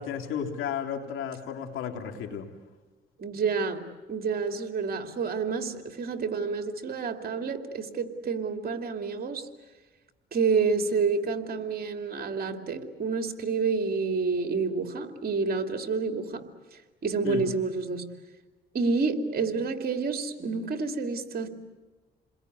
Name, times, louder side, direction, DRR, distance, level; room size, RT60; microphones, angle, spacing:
voice 1, 0.0-2.5 17.2-17.5, left 8 dB, 85° left, 3 dB, 3.3 m, -33 dB
voice 2, 3.2-3.8 4.1-9.4 10.3-16.4 17.0-18.0 18.7-21.5, right 4 dB, 50° right, 5 dB, 2.6 m, -29 dB
28.5 x 21.5 x 9.5 m, 1.3 s
cardioid pair, 90°, 20 cm